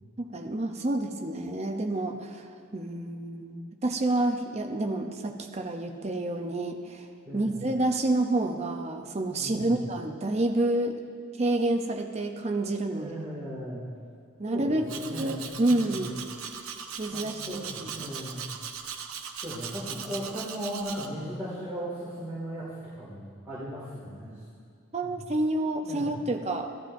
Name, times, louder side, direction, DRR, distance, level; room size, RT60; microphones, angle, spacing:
voice 1, 0.2-7.1 7.3-10.9 11.4-13.1 14.4-16.2 17.0-17.9 24.9-26.7, right 2 dB, 30° right, 4 dB, 0.6 m, -29 dB
voice 2, 9.4-9.8 12.9-13.8 14.5-16.0 17.1-18.5 19.4-22.7 23.0-24.3 25.0-25.2 25.8-26.1, equal, 10° right, -11 dB, 2.3 m, -37 dB
Domestic sounds home sounds, 14.9-21.1, right 7 dB, 85° right, 0.7 m, -39 dB
15.5 x 12.0 x 2.7 m, 2.2 s
head